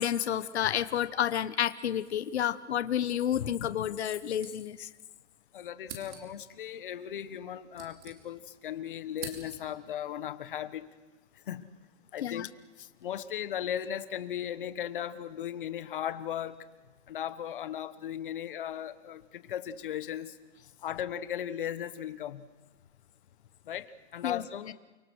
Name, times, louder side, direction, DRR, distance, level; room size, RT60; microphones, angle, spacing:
voice 1, 0.0-4.9 12.2-12.5 24.2-24.4, left 10 dB, 60° left, 13 dB, 1.2 m, -30 dB
sound 1, 4.1-5.1 5.3-5.4 5.8-6.5 7.3-8.6 8.9-9.9, right 4 dB, 70° right, 5.4 m, -47 dB
voice 2, 5.5-10.9 11.5-11.7 12.1-12.5 13.0-16.6 17.1-20.3 20.8-22.4 23.7-24.7, left 10 dB, 45° left, 12 dB, 1.4 m, -37 dB
29.5 x 23.5 x 6.4 m, 1.2 s
hypercardioid pair, 175°, 36 cm